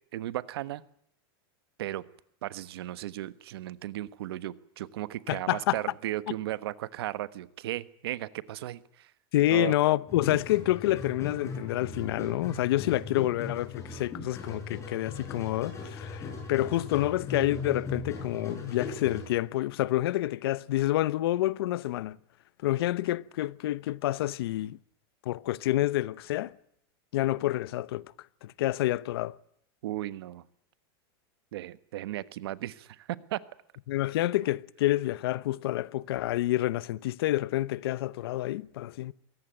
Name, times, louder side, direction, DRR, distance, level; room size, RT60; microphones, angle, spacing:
voice 1, 0.1-0.8 1.8-2.0 2.4-9.1 9.5-9.7 29.8-30.4 31.5-33.4, right 14 dB, 80° right, 1.3 m, -35 dB
voice 2, 5.3-5.8 9.3-22.2 22.6-24.8 25.2-26.5 27.1-28.1 28.4-29.3 33.9-39.1, left 15 dB, 75° left, 0.9 m, -28 dB
sound 1, 10.1-19.3, left 4 dB, 20° left, 7.2 m, -38 dB
23.0 x 17.5 x 9.2 m
supercardioid pair, 150°, 13 cm